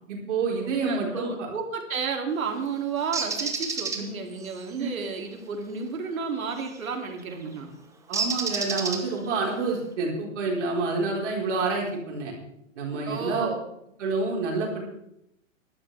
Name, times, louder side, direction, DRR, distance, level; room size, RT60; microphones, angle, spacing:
voice 1, 0.1-1.5 3.9-4.1 4.8-4.9 8.1-12.3 12.8-13.5 14.0-14.8, right 3 dB, 60° right, -1 dB, 4.5 m, -28 dB
voice 2, 0.6-7.8 13.1-13.6, right 5 dB, 90° right, 2 dB, 3.0 m, -32 dB
Bird, 3.1-4.0 6.6-6.8 8.1-9.3, right 4 dB, 5° right, 0.9 m, -29 dB
19.5 x 12.0 x 3.5 m, 0.81 s
hypercardioid pair, 145°, 40 cm